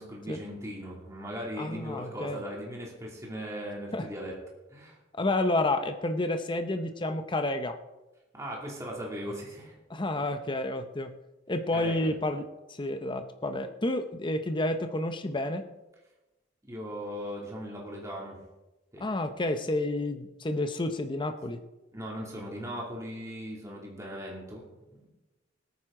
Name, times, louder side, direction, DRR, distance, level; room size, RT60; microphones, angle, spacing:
voice 1, 0.0-4.3 4.7-5.0 8.3-9.7 10.2-10.3 11.7-12.1 16.7-18.4 18.9-19.0 21.9-24.6, equal, 15° right, -3 dB, 2.6 m, -38 dB
voice 2, 1.6-2.4 3.9-4.1 5.1-7.8 9.9-11.2 11.5-12.4 12.7-15.6 19.0-21.6, left 2 dB, 25° left, 8 dB, 0.7 m, -30 dB
19.5 x 9.3 x 3.7 m, 1.0 s
head